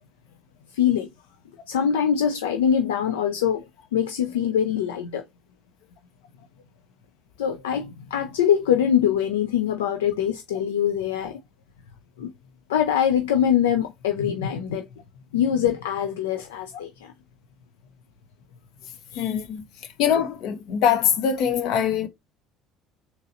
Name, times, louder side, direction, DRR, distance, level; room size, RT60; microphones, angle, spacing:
voice 1, 0.7-1.1 1.7-3.6 3.9-5.2 7.4-11.4 12.2-12.3 12.7-14.9 15.3-17.1 19.1-19.3, left 9 dB, 85° left, 0.4 m, -23 dB
voice 2, 19.2-19.7 20.0-22.1, left 8 dB, 65° left, 0.8 m, -23 dB
4.0 x 2.9 x 2.5 m
hypercardioid pair, 70°, 0 cm